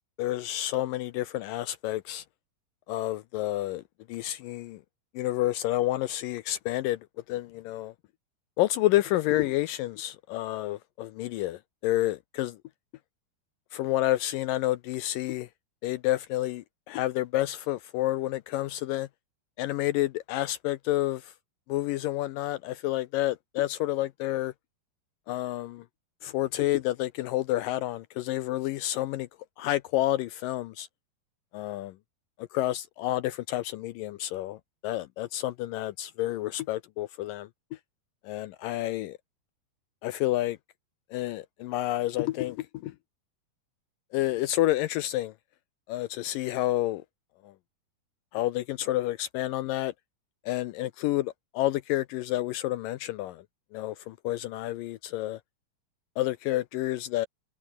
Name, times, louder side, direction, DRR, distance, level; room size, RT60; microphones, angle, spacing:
voice 1, 0.2-2.2 2.9-3.8 4.1-4.8 5.2-7.0 7.3-7.9 8.6-12.6 13.7-15.5 15.8-19.1 19.6-21.3 21.7-24.5 25.3-25.8 26.2-29.3 29.6-30.9 31.5-31.9 32.4-37.5 38.2-39.2 40.0-40.6 41.1-42.9 44.1-45.3 45.9-47.0 48.3-49.9 50.5-53.4 53.7-55.4 56.2-57.3, left 15 dB, 80° left, 2.0 m, -29 dB
omnidirectional pair, 4.5 m